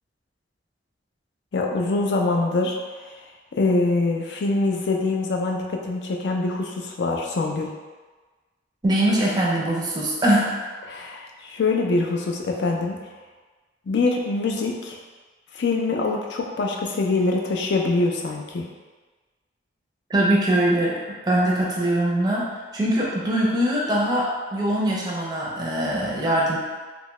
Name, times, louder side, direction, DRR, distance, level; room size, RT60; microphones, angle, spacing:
voice 1, 1.5-2.8 3.6-7.7 10.9-13.0 13.9-15.0 15.5-18.7, left 3 dB, 60° left, 1 dB, 0.4 m, -24 dB
voice 2, 8.8-10.5 20.1-22.4 22.7-26.6, right 1 dB, 20° right, -4 dB, 0.5 m, -22 dB
2.8 x 2.2 x 3.0 m, 1.3 s
head